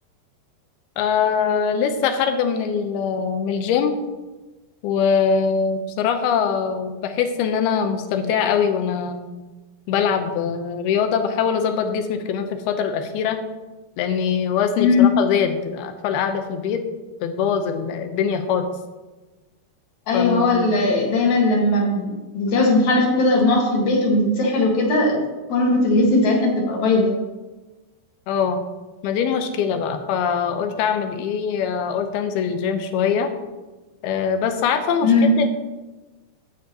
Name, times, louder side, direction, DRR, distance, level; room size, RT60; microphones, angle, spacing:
voice 1, 1.0-4.0 4.8-9.3 9.9-13.4 14.0-16.8 17.2-18.7 20.1-20.8 28.3-28.6 29.0-33.3 34.0-35.5, left 7 dB, 80° left, 7 dB, 2.7 m, -22 dB
voice 2, 14.8-15.2 20.1-25.2 25.5-27.1 35.0-35.3, left 2 dB, 55° left, -1 dB, 2.6 m, -18 dB
13.0 x 10.0 x 2.9 m, 1.2 s
omnidirectional pair, 4.6 m